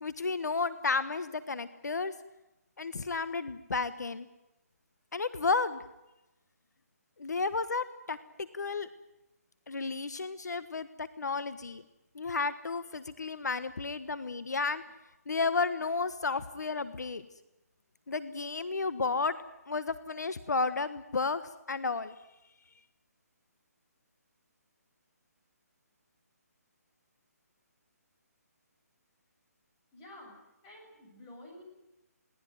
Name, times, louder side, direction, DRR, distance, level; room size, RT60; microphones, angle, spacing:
voice 1, 0.0-2.1 2.8-4.3 5.1-5.8 7.2-8.9 9.7-11.8 12.1-14.8 15.3-17.2 18.1-19.4 19.7-21.4 21.7-22.1, left 4 dB, 85° left, 14 dB, 1.4 m, -32 dB
voice 2, 29.9-30.4 30.6-31.6, left 1 dB, 20° left, 0 dB, 7.4 m, -50 dB
21.5 x 18.0 x 9.5 m, 0.95 s
hypercardioid pair, 165°, 9 cm